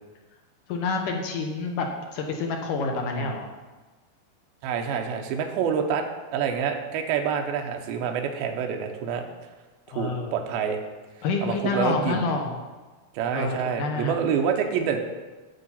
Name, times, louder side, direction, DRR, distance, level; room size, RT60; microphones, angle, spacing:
voice 1, 0.7-1.9 2.1-3.5 9.9-10.4 11.2-12.6 13.3-14.2, left 4 dB, 70° left, 2 dB, 2.2 m, -28 dB
voice 2, 3.0-3.4 4.6-6.0 6.3-9.3 9.9-10.8 11.4-12.3 13.1-15.0, right 7 dB, 75° right, 3 dB, 2.6 m, -27 dB
9.4 x 7.4 x 5.6 m, 1.2 s
omnidirectional pair, 4.6 m